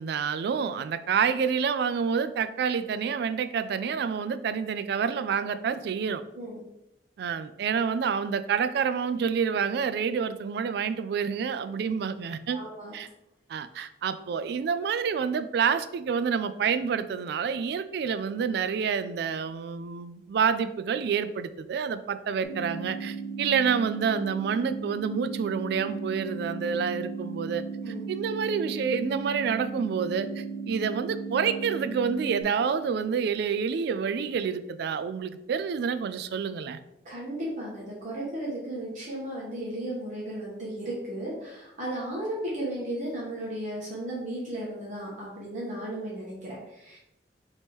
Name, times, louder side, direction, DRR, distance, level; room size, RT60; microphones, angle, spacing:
voice 1, 0.0-6.2 7.2-12.6 12.9-13.1 13.5-36.8, right 6 dB, 65° right, 13 dB, 0.3 m, -28 dB
voice 2, 12.5-12.9 27.8-28.1 37.0-47.0, right 1 dB, 45° right, -6 dB, 1.1 m, -35 dB
sound 1, 22.4-32.4, right 5 dB, 40° left, 0.9 m, -36 dB
3.5 x 3.1 x 4.2 m, 0.86 s
head